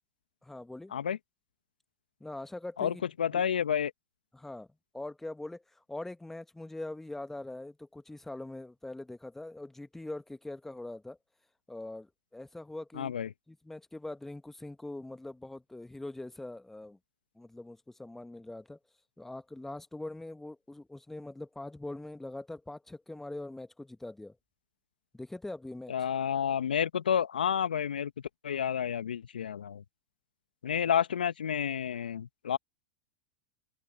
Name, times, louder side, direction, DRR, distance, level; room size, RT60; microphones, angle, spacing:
voice 1, 0.4-0.9 2.2-3.0 3.3-3.4 4.3-4.7 4.9-11.2 11.7-13.1 13.5-17.0 17.3-18.8 19.2-24.4 25.1-25.9, left 2 dB, 5° left, 1.5 m, -42 dB
voice 2, 2.8-3.9 12.9-13.3 25.9-28.1 28.4-29.8 30.6-32.6, left 8 dB, 80° left, 1.4 m, -30 dB
open air
hypercardioid pair, 95°, 5 cm